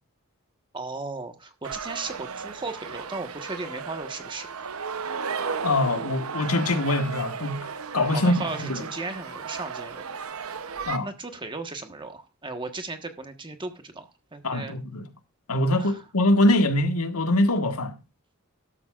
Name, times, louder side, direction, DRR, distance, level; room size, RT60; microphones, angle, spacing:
voice 1, 0.7-4.5 8.1-10.0 11.0-14.8 15.7-16.0, right 3 dB, 20° right, 1.3 m, -36 dB
Soccer stadium Oehh, 1.6-11.0, right 5 dB, 70° right, 0.8 m, -34 dB
voice 2, 5.6-7.7 7.9-8.8 10.9-11.1 14.4-15.1 15.5-17.9, left 1 dB, 80° left, 1.6 m, -23 dB
13.5 x 12.0 x 2.5 m
head